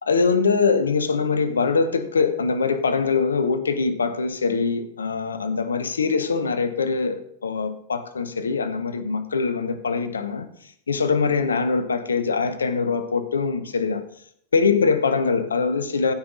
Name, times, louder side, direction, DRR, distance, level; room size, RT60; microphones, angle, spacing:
voice 1, 0.0-10.5 10.9-14.0 14.5-16.1, left 5 dB, 70° left, 0.9 m, -23 dB
15.5 x 5.7 x 3.9 m
figure-of-eight pair, 90°, 0 cm